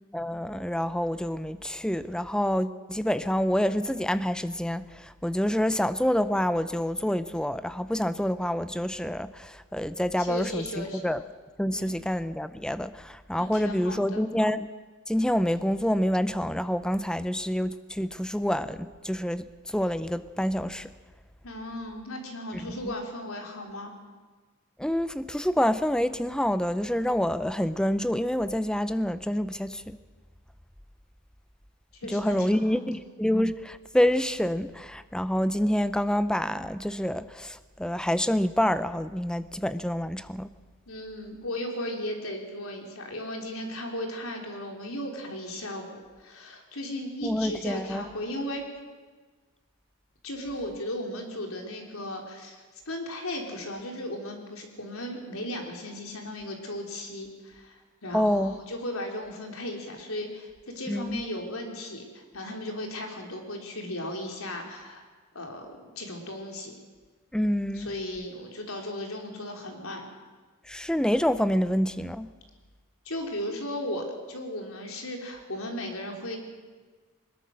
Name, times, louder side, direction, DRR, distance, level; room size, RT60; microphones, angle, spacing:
voice 1, 0.1-11.2 11.6-14.7 15.1-20.9 22.8-22.9 24.8-30.0 32.1-40.5 47.2-48.0 58.1-58.6 60.9-61.2 67.3-67.9 70.7-72.3, equal, 5° left, 13 dB, 0.6 m, -27 dB
voice 2, 10.2-11.1 11.7-11.9 13.4-14.3 21.4-23.9 32.0-32.9 40.9-48.6 50.2-65.0 65.3-66.7 67.7-70.0 73.1-76.4, left 1 dB, 80° left, 2 dB, 3.6 m, -36 dB
21.5 x 20.5 x 6.4 m, 1.4 s
head